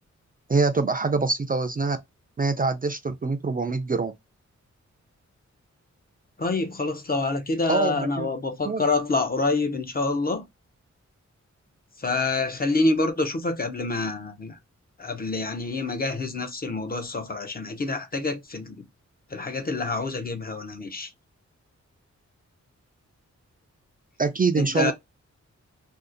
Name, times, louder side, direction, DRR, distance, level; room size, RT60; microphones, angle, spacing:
voice 1, 0.5-2.0 2.4-4.1 7.7-8.3 8.6-8.8 24.2-24.9, right 4 dB, 30° right, 0.4 m, -24 dB
voice 2, 6.4-10.4 12.0-14.6 15.0-18.9 19.3-21.1 24.6-24.9, left 3 dB, 30° left, 0.6 m, -27 dB
2.6 x 2.4 x 3.6 m
wide cardioid pair, 155°, 29 cm